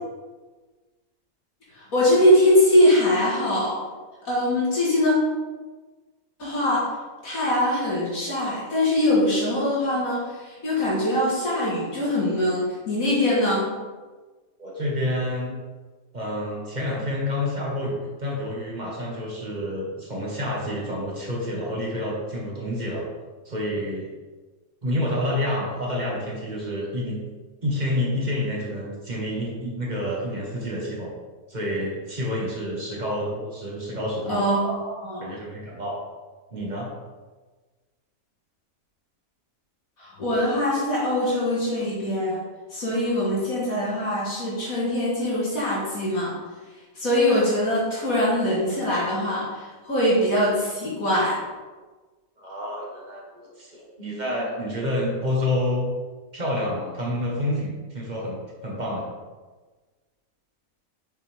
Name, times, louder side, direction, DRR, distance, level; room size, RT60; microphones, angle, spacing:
voice 1, 1.7-3.7 4.2-5.1 6.4-6.8 7.2-13.7 34.3-35.3 40.0-42.4 42.7-46.4 46.9-51.4, left 1 dB, 70° left, -7 dB, 2.5 m, -22 dB
voice 2, 14.6-15.6 16.1-23.1 23.5-24.1 24.8-27.2 27.6-31.1 31.5-34.5 35.2-36.0 36.5-36.9 52.4-55.9 56.3-59.0, left 1 dB, 30° right, -3 dB, 1.8 m, -28 dB
7.8 x 6.1 x 3.7 m, 1.3 s
omnidirectional pair, 1.5 m